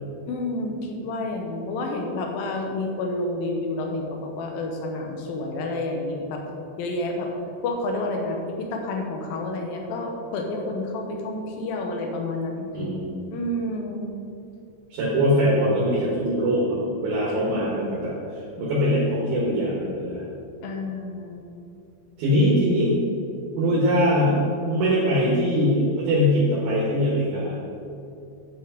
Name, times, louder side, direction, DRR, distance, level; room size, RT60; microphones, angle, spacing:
voice 1, 0.3-6.4 6.8-7.3 7.6-12.7 13.3-14.1 17.3-18.1 20.6-21.4, left 2 dB, 75° left, 2 dB, 2.1 m, -29 dB
voice 2, 12.7-13.3 14.9-18.1 18.6-20.2 22.2-23.0 23.6-24.4 24.7-27.6, equal, 65° right, -5 dB, 3.0 m, -22 dB
8.9 x 7.3 x 5.1 m, 2.6 s
omnidirectional pair, 5.2 m